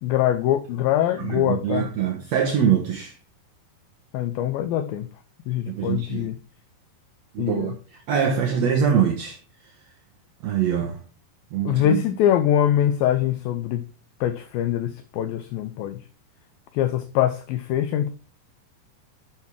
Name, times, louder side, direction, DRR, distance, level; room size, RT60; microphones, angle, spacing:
voice 1, 0.0-1.9 4.1-5.1 5.5-6.4 7.4-7.8 11.6-13.8 14.2-16.0 16.7-18.1, left 11 dB, 80° left, 2.2 m, -23 dB
voice 2, 1.2-3.1 5.7-6.3 7.3-9.4 10.4-11.0 11.5-12.0, right 8 dB, 65° right, 1.7 m, -24 dB
11.5 x 6.4 x 3.6 m
omnidirectional pair, 4.8 m